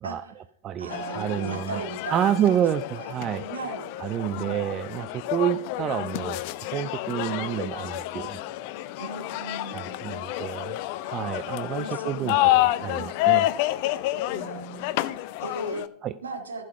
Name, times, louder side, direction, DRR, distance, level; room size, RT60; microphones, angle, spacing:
voice 1, 0.0-0.3 0.8-3.1 3.4-3.9 4.3-4.6 9.0-10.0 11.7-12.5 13.0-13.1 14.3-15.8 16.2-16.6, right 3 dB, 70° right, 4 dB, 1.8 m, -37 dB
voice 2, 0.6-1.8 2.1-3.4 4.0-6.4 6.7-8.4 9.7-10.8 11.1-13.5 16.0-16.2, right 10 dB, 30° right, 14 dB, 0.4 m, -29 dB
sound 1, 0.9-15.9, left 16 dB, 45° left, 0.5 m, -29 dB
14.5 x 5.4 x 5.7 m, 0.72 s
figure-of-eight pair, 90°, 0 cm